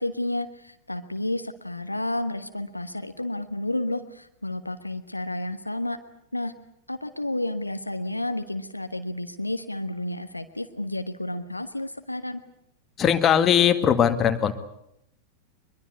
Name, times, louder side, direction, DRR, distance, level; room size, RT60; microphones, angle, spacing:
voice 1, 0.0-6.0 6.3-6.5 6.9-12.4, left 1 dB, 85° left, 9 dB, 1.3 m, -31 dB
voice 2, 13.0-14.5, left 9 dB, 25° left, 7 dB, 2.0 m, -20 dB
23.0 x 22.5 x 8.3 m, 0.76 s
figure-of-eight pair, 90°, 0 cm